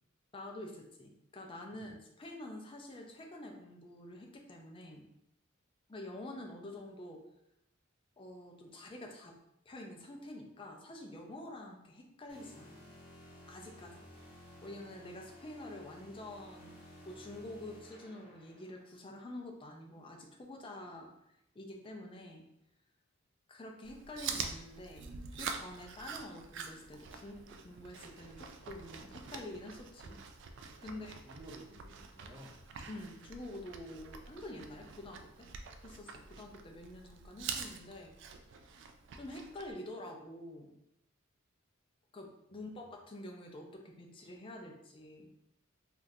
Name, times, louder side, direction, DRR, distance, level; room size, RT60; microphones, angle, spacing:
voice 1, 0.3-5.1 5.9-7.2 8.2-9.3 9.7-12.9 13.5-14.0 14.6-16.7 17.0-21.1 21.5-22.4 23.5-25.0 25.3-27.4 27.6-30.2 30.8-31.2 32.9-35.5 35.8-38.1 39.2-40.7 42.1-45.3, left 1 dB, 25° left, 1 dB, 0.4 m, -47 dB
sound 1, 12.3-18.8, left 1 dB, 50° left, 1.5 m, -55 dB
voice 2, 13.8-14.2 30.9-32.6 42.5-42.8, right 1 dB, 15° right, -10 dB, 0.6 m, -55 dB
Chewing mastication, 23.8-39.7, right 6 dB, 60° right, 0.3 m, -46 dB
3.6 x 2.4 x 2.7 m, 0.80 s
head